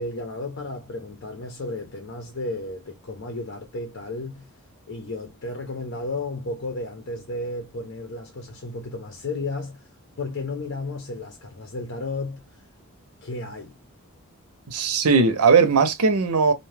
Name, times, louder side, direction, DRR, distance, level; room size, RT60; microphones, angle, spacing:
voice 1, 0.0-4.5 4.9-9.8 10.2-12.4 13.2-13.8, left 2 dB, 60° left, 0.7 m, -33 dB
voice 2, 14.7-16.5, right 5 dB, 80° right, 0.7 m, -18 dB
2.6 x 2.2 x 3.2 m
head